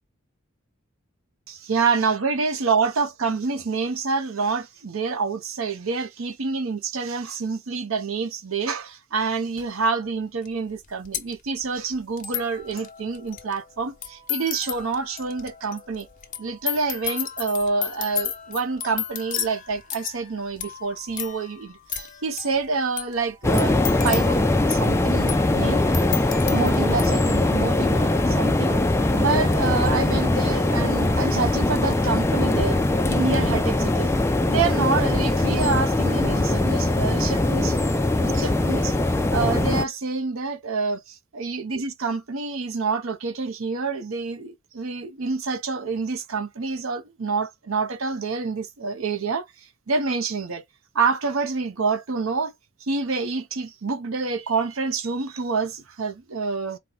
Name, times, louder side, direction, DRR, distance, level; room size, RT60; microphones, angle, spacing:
voice 1, 1.5-16.1 16.4-23.8 24.0-25.8 26.5-28.8 29.1-32.8 33.1-34.1 34.5-38.9 39.3-49.4 49.9-50.6 50.9-52.5 52.8-56.8, right 4 dB, 75° right, 0.7 m, -27 dB
sound 1, 9.6-9.7 10.5-10.6 10.7-27.1, left 10 dB, 40° left, 0.8 m, -34 dB
sound 2, 23.4-39.8, left 2 dB, 10° left, 0.4 m, -21 dB
4.4 x 2.2 x 3.8 m
head